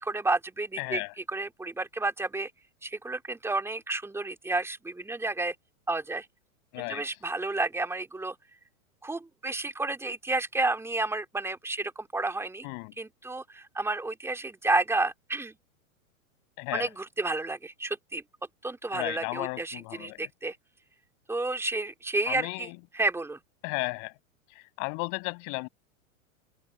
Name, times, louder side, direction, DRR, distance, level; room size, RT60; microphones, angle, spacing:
voice 1, 0.0-1.0 1.3-2.5 2.8-5.5 5.9-6.3 6.8-8.4 9.0-12.7 13.0-15.5 16.7-18.2 18.6-20.5 21.3-22.7 22.9-23.4, right 2 dB, 5° right, 2.9 m, -31 dB
voice 2, 0.8-1.1 6.7-7.2 12.6-12.9 16.6-16.9 18.9-20.3 22.3-22.8 23.6-24.1 24.5-25.7, left 40 dB or more, 50° left, 7.9 m, -34 dB
hypercardioid pair, 115°, 42 cm